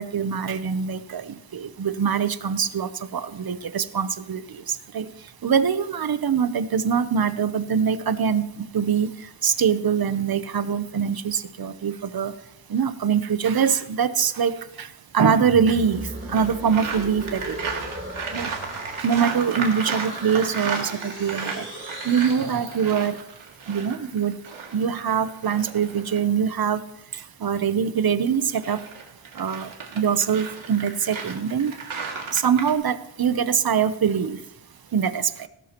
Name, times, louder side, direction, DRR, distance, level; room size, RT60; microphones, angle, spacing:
voice 1, 0.0-5.1 5.4-8.4 8.7-9.1 9.4-12.3 12.7-14.5 14.8-14.9 15.1-17.7 18.3-18.5 19.0-21.7 22.0-23.2 23.7-24.3 24.7-26.8 27.4-28.8 29.4-31.8 32.3-34.4 34.9-35.3, right 7 dB, 45° right, 12 dB, 0.8 m, -23 dB
sound 1, 15.4-23.3, right 1 dB, 25° right, 3.3 m, -37 dB
sound 2, 16.3-26.2 28.3-32.7, right 5 dB, 75° right, 2.4 m, -34 dB
17.5 x 12.5 x 3.0 m, 0.81 s
wide cardioid pair, 125°, 49 cm